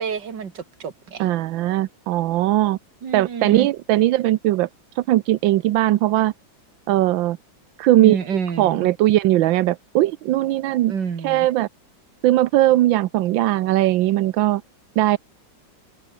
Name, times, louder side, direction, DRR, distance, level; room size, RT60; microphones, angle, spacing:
voice 1, 0.0-1.3 3.0-3.7 8.0-8.9 10.9-11.5, right 6 dB, 65° right, 2.7 m, -28 dB
voice 2, 1.2-2.8 3.1-4.7 5.0-6.3 6.9-7.4 7.8-8.2 8.6-10.9 11.2-11.7 12.2-14.6 15.0-15.2, right 15 dB, 90° right, 1.5 m, -19 dB
open air
omnidirectional pair, 2.1 m